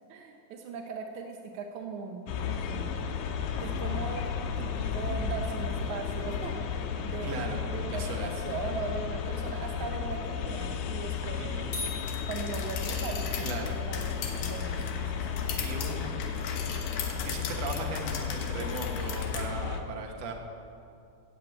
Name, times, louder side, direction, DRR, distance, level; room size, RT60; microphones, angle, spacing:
voice 1, 0.1-3.1 3.6-4.3 4.6-7.3 7.7-11.6 12.3-15.7, right 5 dB, 80° right, 3 dB, 1.7 m, -39 dB
sound 1, 2.3-19.8, left 6 dB, 80° left, 2.8 m, -33 dB
voice 2, 7.2-7.6 7.9-8.4 11.3-11.7 13.4-13.8 15.6-16.1 16.4-20.3, right 3 dB, 55° right, 1 dB, 2.1 m, -38 dB
sound 2, 11.7-13.3, left 4 dB, 40° left, 4.9 m, -40 dB
sound 3, 12.1-19.5, left 7 dB, 65° left, 2.7 m, -39 dB
15.0 x 8.5 x 8.3 m, 2.6 s
omnidirectional pair, 4.5 m